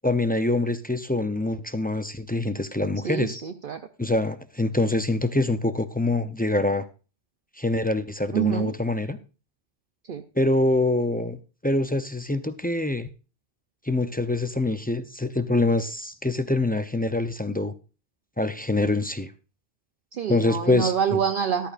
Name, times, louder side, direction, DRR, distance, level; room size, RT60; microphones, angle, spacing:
voice 1, 0.0-3.4 4.0-6.9 7.6-9.2 10.4-13.1 13.9-17.7 18.4-19.3 20.3-20.9, left 2 dB, 15° left, 10 dB, 0.4 m, -25 dB
voice 2, 3.0-3.8 8.3-8.7 10.1-10.2 20.1-21.7, right 8 dB, 60° right, 8 dB, 0.8 m, -26 dB
14.0 x 12.0 x 2.5 m, 0.33 s
omnidirectional pair, 1.1 m